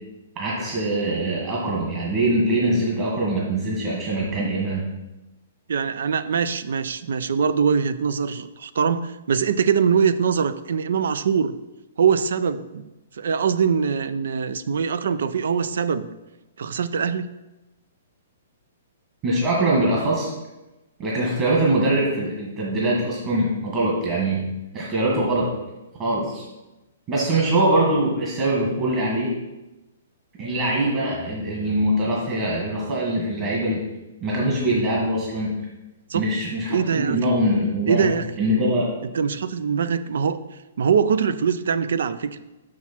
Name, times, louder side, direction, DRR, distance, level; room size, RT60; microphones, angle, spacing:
voice 1, 0.4-4.8 19.2-20.3 21.0-24.5 24.7-25.5 26.0-26.5 27.1-29.4 30.4-33.9 34.2-35.6 36.1-38.1 38.4-38.9, right 1 dB, 35° right, -4 dB, 1.8 m, -23 dB
voice 2, 5.7-11.6 12.0-12.9 13.2-16.1 16.6-17.4 36.1-36.3 36.7-37.2 37.9-38.3 39.1-40.4 40.8-42.4, right 6 dB, 75° right, 13 dB, 0.4 m, -22 dB
6.3 x 6.0 x 4.3 m, 1.0 s
hypercardioid pair, 145°, 0 cm